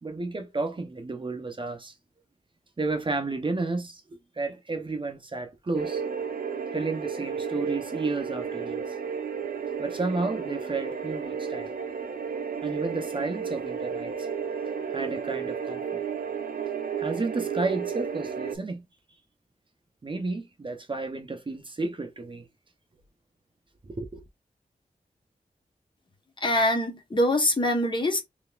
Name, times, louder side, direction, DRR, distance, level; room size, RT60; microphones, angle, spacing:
voice 1, 0.0-1.9 2.8-4.0 4.4-6.0 6.7-8.8 9.8-11.7 12.6-14.3 14.9-16.0 17.0-18.9 20.0-22.5 23.9-24.2, right 3 dB, 35° right, 0.7 m, -32 dB
sound 1, 5.7-18.5, right 6 dB, 90° right, 0.7 m, -33 dB
voice 2, 26.4-28.2, left 1 dB, 30° left, 1.1 m, -24 dB
3.9 x 3.3 x 2.4 m
wide cardioid pair, 110°, 15 cm